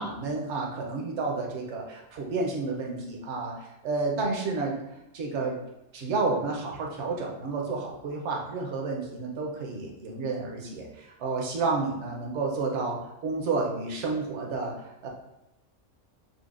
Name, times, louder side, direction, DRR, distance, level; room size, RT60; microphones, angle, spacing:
voice 1, 0.0-4.8 5.1-5.6 5.9-15.1, right 3 dB, 65° right, 0 dB, 1.0 m, -31 dB
5.4 x 2.1 x 2.4 m, 0.93 s
omnidirectional pair, 1.3 m